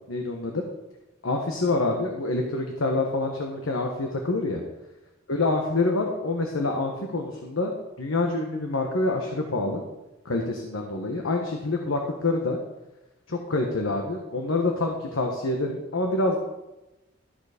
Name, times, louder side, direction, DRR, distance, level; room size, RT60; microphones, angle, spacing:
voice 1, 0.1-0.6 1.2-4.6 5.3-7.7 8.0-9.8 10.2-12.6 13.3-16.4, left 2 dB, 80° left, 2 dB, 1.3 m, -26 dB
13.5 x 6.9 x 5.0 m, 1.0 s
head